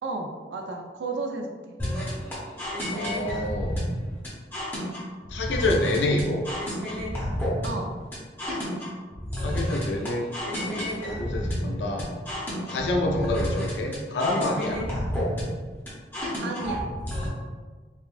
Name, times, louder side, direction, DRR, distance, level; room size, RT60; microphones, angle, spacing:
voice 1, 0.0-1.5 7.6-7.9 14.7-15.0 16.4-16.9, right 3 dB, 85° right, 2 dB, 0.3 m, -33 dB
sound 1, 1.8-17.3, equal, 10° left, 0.6 m, -30 dB
voice 2, 2.9-3.8 5.3-6.4 9.4-12.1 12.7-14.8, left 1 dB, 90° left, 0 dB, 0.4 m, -27 dB
3.5 x 2.2 x 2.4 m, 1.4 s
head